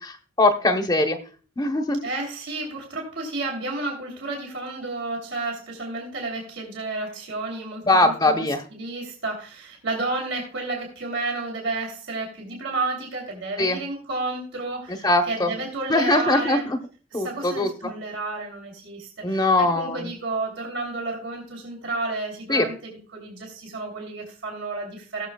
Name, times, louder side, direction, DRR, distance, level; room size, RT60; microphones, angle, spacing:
voice 1, 0.0-1.2 1.6-2.0 7.9-8.6 13.6-13.8 15.0-15.5 15.9-16.6 17.1-17.9 19.2-20.0 22.5-22.7, left 2 dB, 20° left, 6 dB, 0.8 m, -21 dB
voice 2, 2.0-16.7 17.1-25.3, right 3 dB, 80° right, 0 dB, 3.1 m, -31 dB
19.0 x 7.0 x 2.3 m, 0.39 s
head